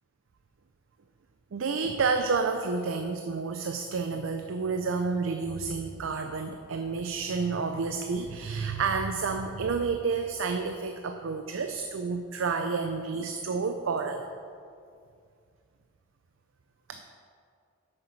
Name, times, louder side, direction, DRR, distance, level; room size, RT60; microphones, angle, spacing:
voice 1, 1.5-14.3 16.9-17.0, right 4 dB, 75° right, 6 dB, 0.5 m, -30 dB
8.5 x 6.7 x 5.6 m, 2.3 s
head